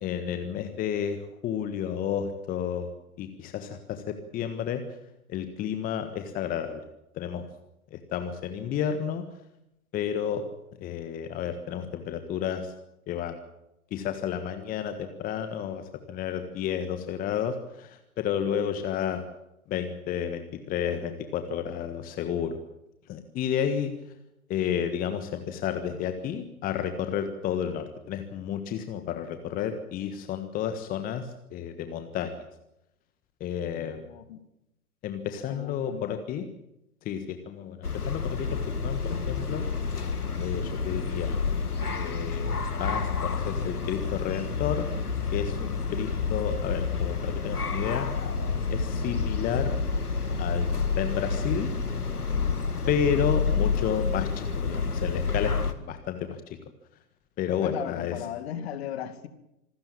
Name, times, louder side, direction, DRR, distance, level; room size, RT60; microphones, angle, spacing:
voice 1, 0.0-2.9 3.2-4.8 5.3-6.8 7.1-7.4 7.9-9.2 9.9-10.4 10.8-12.7 13.1-13.4 13.9-19.2 19.7-22.6 23.1-23.9 24.5-32.5 33.4-34.0 35.0-36.5 37.0-39.6 40.4-41.4 41.9-44.9 45.3-48.1 48.7-49.8 50.4-50.7 50.9-51.7 52.9-56.6 57.4-58.2, left 8 dB, 20° left, 1.5 m, -31 dB
voice 2, 33.7-34.4 35.5-36.5 53.6-53.7 57.6-59.3, left 10 dB, 45° left, 2.4 m, -37 dB
sound 1, 37.8-55.7, left 5 dB, 80° left, 2.1 m, -29 dB
Bowed string instrument, 50.2-55.0, left 2 dB, 85° right, 5.9 m, -47 dB
26.5 x 13.5 x 8.8 m
figure-of-eight pair, 115°, 45 cm